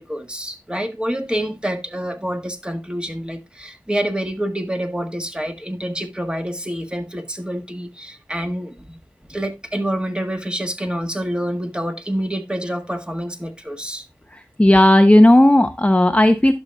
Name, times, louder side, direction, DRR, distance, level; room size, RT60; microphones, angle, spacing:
voice 1, 0.0-9.0 9.3-14.0, equal, 10° right, 1.6 m, -27 dB
voice 2, 14.6-16.5, left 1 dB, 15° left, 0.7 m, -12 dB
11.5 x 6.9 x 2.3 m
wide cardioid pair, 45°, 8 cm